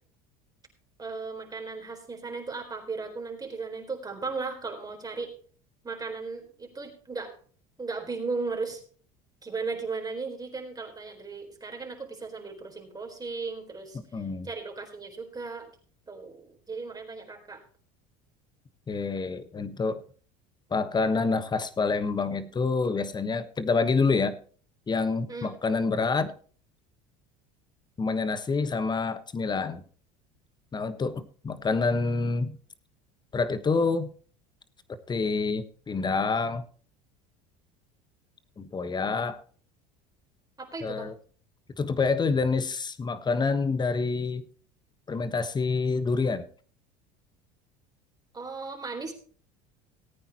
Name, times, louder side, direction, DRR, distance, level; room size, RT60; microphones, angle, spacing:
voice 1, 1.0-5.3 5.8-7.3 7.8-8.8 9.4-14.0 14.4-15.7 16.1-17.6 25.3-25.5 40.6-41.1 48.3-49.1, right 4 dB, 20° right, 2 dB, 4.0 m, -36 dB
voice 2, 14.1-14.5 18.9-20.0 20.7-24.3 24.9-26.3 28.0-29.8 30.7-32.6 33.3-34.1 35.1-36.6 38.6-39.4 40.8-41.1 41.8-44.4 45.1-46.4, left 4 dB, 25° left, 13 dB, 1.2 m, -27 dB
19.0 x 9.0 x 3.0 m, 0.43 s
supercardioid pair, 95°, 18 cm